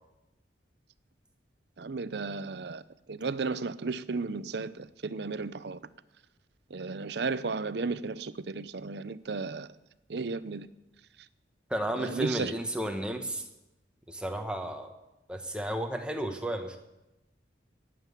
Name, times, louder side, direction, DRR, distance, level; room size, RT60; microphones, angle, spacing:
voice 1, 1.8-2.8 3.1-5.8 6.7-9.7 10.1-10.7 12.0-12.5, right 4 dB, 65° right, 0.6 m, -34 dB
voice 2, 11.7-13.5 14.1-14.9 15.3-16.8, right 1 dB, 5° right, 1.3 m, -33 dB
18.0 x 7.6 x 8.3 m
head